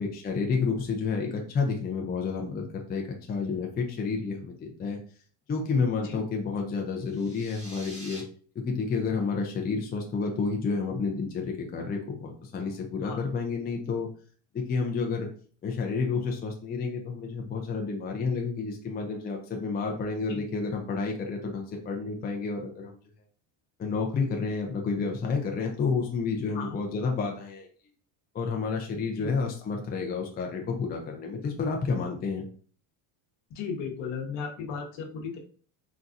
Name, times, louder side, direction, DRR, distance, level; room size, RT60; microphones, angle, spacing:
voice 1, 0.0-3.0 3.3-5.0 5.5-8.2 8.6-14.1 14.5-15.3 15.6-23.0 23.8-27.7 28.3-32.4, left 4 dB, 20° left, 1 dB, 0.5 m, -30 dB
sound 1, 7.0-8.2, equal, 15° right, 1.3 m, -45 dB
voice 2, 33.5-35.4, left 6 dB, 60° left, 1 dB, 1.1 m, -35 dB
4.1 x 2.3 x 2.5 m, 0.42 s
cardioid pair, 120°, 48 cm